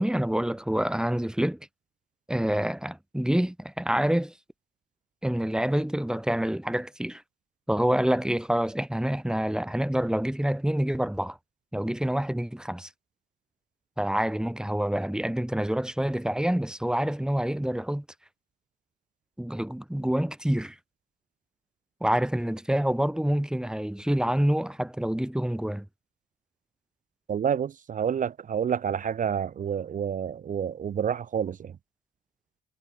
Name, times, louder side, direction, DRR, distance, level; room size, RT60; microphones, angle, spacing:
voice 1, 0.0-1.6 2.3-4.3 5.2-7.2 7.7-11.4 11.7-12.9 14.0-18.0 19.4-20.7 22.0-25.8, right 1 dB, 5° right, 1.6 m, -27 dB
voice 2, 27.3-31.8, right 8 dB, 40° right, 0.6 m, -29 dB
cardioid pair, 90°, 20 cm